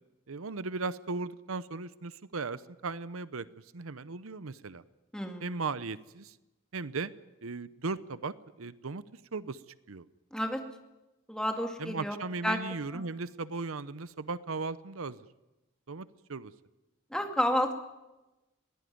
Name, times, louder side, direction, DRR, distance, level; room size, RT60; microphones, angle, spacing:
voice 1, 0.3-3.5 3.7-4.8 5.4-6.4 6.7-7.1 7.4-9.0 9.3-9.6 9.9-10.0 11.8-15.3 15.9-16.5, right 4 dB, 90° right, 16 dB, 0.8 m, -37 dB
voice 2, 5.1-5.6 10.3-10.6 11.3-12.2 12.4-12.6 12.9-13.0 17.1-17.7, equal, 5° left, 4 dB, 2.2 m, -30 dB
21.5 x 17.0 x 9.5 m, 1.0 s
head